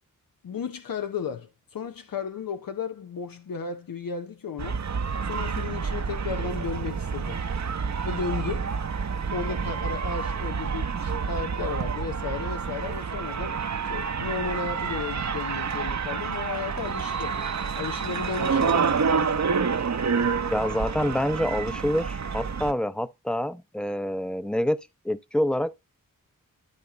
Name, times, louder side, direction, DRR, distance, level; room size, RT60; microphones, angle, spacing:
voice 1, 0.4-4.8 5.2-7.4 8.0-8.7 9.3-13.6 13.8-17.4 17.8-19.2, left 6 dB, 80° left, 0.8 m, -34 dB
sound 1, 4.6-22.7, right 6 dB, 55° right, 0.8 m, -28 dB
voice 2, 20.5-24.8 25.0-25.8, left 1 dB, 5° left, 0.6 m, -27 dB
12.0 x 4.3 x 3.9 m
cardioid pair, 55°, 34 cm